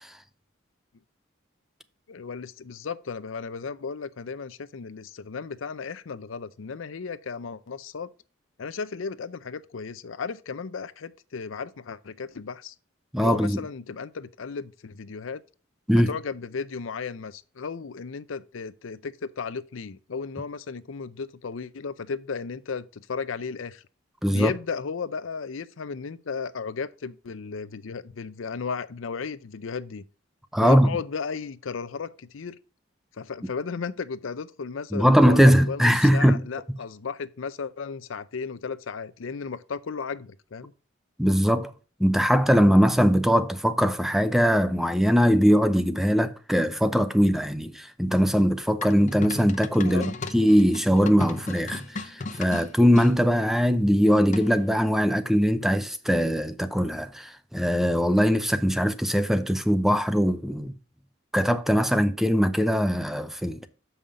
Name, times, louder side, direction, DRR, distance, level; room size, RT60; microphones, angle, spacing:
voice 1, 2.1-8.1 8.6-12.7 13.2-15.4 16.1-23.8 24.3-30.0 30.6-32.6 33.2-40.7 49.8-50.1, left 5 dB, 75° left, 0.5 m, -35 dB
voice 2, 13.1-13.6 15.9-16.1 24.2-24.5 30.5-30.9 34.9-36.5 41.2-41.7 42.0-60.7 61.3-63.7, equal, ahead, 0.5 m, -21 dB
sound 1, 48.8-53.1 54.3-54.7, left 3 dB, 40° left, 0.7 m, -36 dB
7.1 x 5.6 x 4.9 m
head